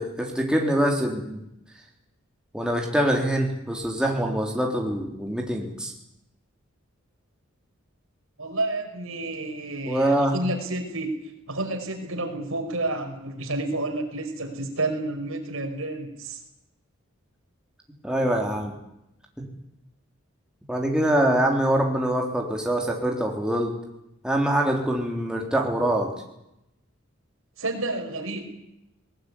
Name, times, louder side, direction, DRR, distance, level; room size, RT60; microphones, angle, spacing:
voice 1, 0.0-1.4 2.5-5.9 9.8-10.3 18.0-18.8 19.4-19.5 20.7-23.7 24.2-26.1, right 1 dB, 5° right, 0 dB, 3.5 m, -24 dB
voice 2, 8.4-16.4 27.6-28.4, right 2 dB, 75° right, 4 dB, 5.2 m, -30 dB
20.5 x 19.5 x 9.8 m, 0.83 s
head